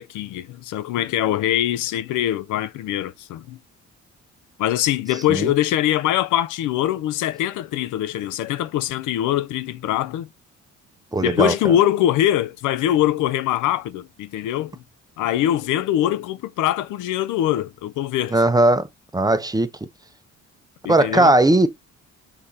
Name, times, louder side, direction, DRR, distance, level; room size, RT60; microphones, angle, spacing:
voice 1, 0.0-3.6 4.6-10.3 11.2-14.7 15.2-18.4 20.8-21.4, left 12 dB, 85° left, 0.6 m, -23 dB
voice 2, 11.1-11.7 18.3-18.9 19.1-19.7 20.9-21.7, right 2 dB, 15° right, 0.8 m, -18 dB
6.6 x 3.7 x 4.2 m
cardioid pair, 90°, 30 cm